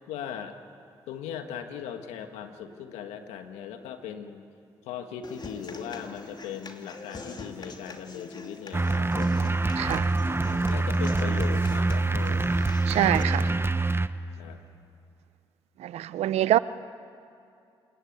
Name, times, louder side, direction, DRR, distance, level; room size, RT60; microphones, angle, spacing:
voice 1, 0.1-0.6 1.1-4.4 4.8-9.6 10.7-12.4 14.4-14.6, left 8 dB, 90° left, 1.6 m, -39 dB
Human voice / Acoustic guitar, 5.2-13.2, left 3 dB, 40° left, 3.0 m, -43 dB
sound 1, 8.7-14.1, right 2 dB, 20° right, 1.1 m, -25 dB
voice 2, 9.8-10.1 12.9-13.5 15.8-16.6, right 13 dB, 80° right, 0.7 m, -25 dB
26.5 x 21.5 x 9.5 m
supercardioid pair, 50°, 11 cm